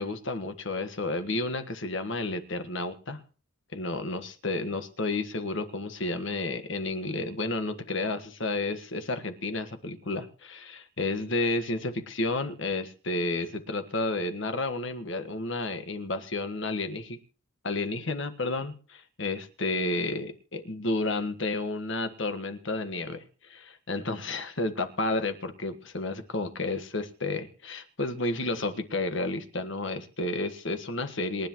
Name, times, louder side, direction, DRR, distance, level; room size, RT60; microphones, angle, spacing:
voice 1, 0.0-3.2 3.7-17.2 17.6-31.5, left 2 dB, 60° left, 8 dB, 1.5 m, -31 dB
27.0 x 10.5 x 3.1 m, 0.38 s
head